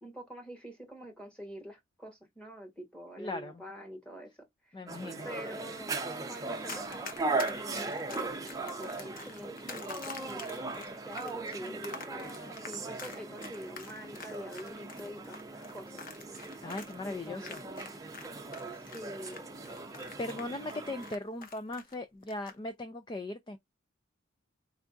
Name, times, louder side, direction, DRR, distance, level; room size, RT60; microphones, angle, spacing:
voice 1, 0.0-4.3 4.6-4.9 5.2-6.0 6.2-8.2 8.8-16.0 16.3-16.6 17.0-17.7 18.7-19.5, equal, 5° left, 1.4 m, -46 dB
voice 2, 3.2-3.6 4.7-5.3 16.6-17.6 20.2-23.6, left 2 dB, 20° left, 0.4 m, -38 dB
sound 1, 4.9-21.2, right 3 dB, 15° right, 0.6 m, -39 dB
Run, 6.6-18.3 18.5-21.9 22.2-22.5, left 5 dB, 45° left, 0.8 m, -46 dB
4.4 x 3.5 x 2.6 m
head